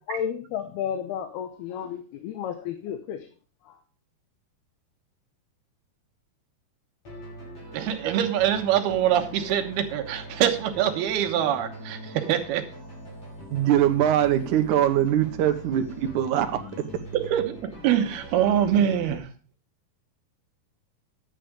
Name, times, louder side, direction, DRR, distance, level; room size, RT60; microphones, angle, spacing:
voice 1, 0.1-3.3 3.7-3.8, left 9 dB, 90° left, 3.0 m, -32 dB
sound 1, 7.1-19.2, left 1 dB, 40° left, 6.9 m, -42 dB
voice 2, 7.7-12.7 17.1-19.3, right 10 dB, 90° right, 3.1 m, -24 dB
voice 3, 13.5-16.9, right 11 dB, 65° right, 2.2 m, -22 dB
11.0 x 9.2 x 5.0 m
omnidirectional pair, 4.4 m